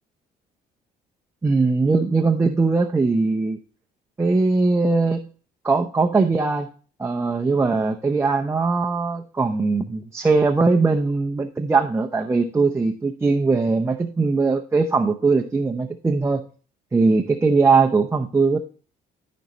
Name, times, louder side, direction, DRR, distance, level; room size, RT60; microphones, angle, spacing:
voice 1, 1.4-3.6 4.2-5.2 5.6-6.7 7.0-16.5 16.9-18.6, right 4 dB, 15° right, 2 dB, 0.8 m, -20 dB
13.0 x 5.4 x 3.0 m, 0.39 s
cardioid pair, 110°, 17 cm